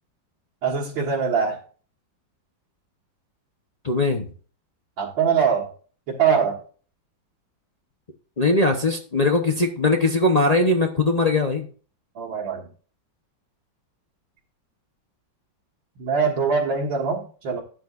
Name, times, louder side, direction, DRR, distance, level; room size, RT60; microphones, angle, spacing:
voice 1, 0.6-1.6 5.0-5.7 6.1-6.6 12.2-12.7 16.0-17.6, right 6 dB, 80° right, -3 dB, 2.4 m, -23 dB
voice 2, 3.8-4.2 8.4-11.7, left 2 dB, 40° left, 3 dB, 0.5 m, -20 dB
12.5 x 9.0 x 2.5 m, 0.40 s
omnidirectional pair, 2.1 m